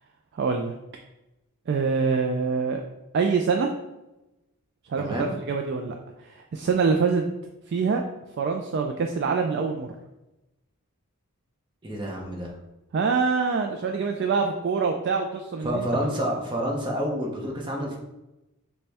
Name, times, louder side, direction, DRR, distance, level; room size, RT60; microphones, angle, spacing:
voice 1, 0.3-0.7 1.7-2.8 3.1-3.7 4.9-6.0 6.2-7.3 7.7-8.0 8.4-9.9 12.9-15.9, right 5 dB, 50° right, 3 dB, 0.3 m, -25 dB
voice 2, 5.0-5.3 11.8-12.5 15.6-18.0, equal, 20° right, -1 dB, 0.8 m, -28 dB
6.6 x 2.2 x 3.4 m, 0.97 s
head